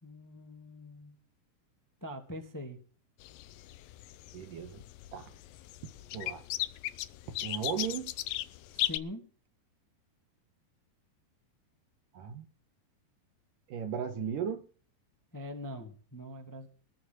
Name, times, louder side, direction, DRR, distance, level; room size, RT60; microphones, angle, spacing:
voice 1, 0.0-1.2 2.0-2.8 8.7-9.2 15.3-16.7, left 1 dB, 5° left, 5 dB, 1.4 m, -43 dB
sound 1, 3.2-9.0, left 15 dB, 80° left, 2.0 m, -37 dB
voice 2, 4.3-4.8 5.1-5.3 6.1-6.4 7.4-8.1 12.1-12.5 13.7-14.6, right 7 dB, 65° right, 9 dB, 2.4 m, -36 dB
19.5 x 6.5 x 7.8 m, 0.42 s
omnidirectional pair, 4.8 m